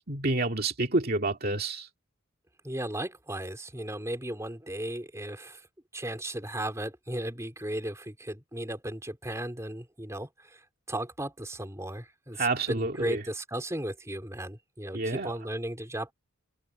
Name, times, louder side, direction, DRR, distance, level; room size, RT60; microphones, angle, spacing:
voice 1, 0.1-1.9 12.4-13.2 14.9-15.3, right 2 dB, 45° right, 2.3 m, -28 dB
voice 2, 2.6-5.7 5.9-10.6 10.9-16.1, right 1 dB, 15° right, 4.1 m, -36 dB
head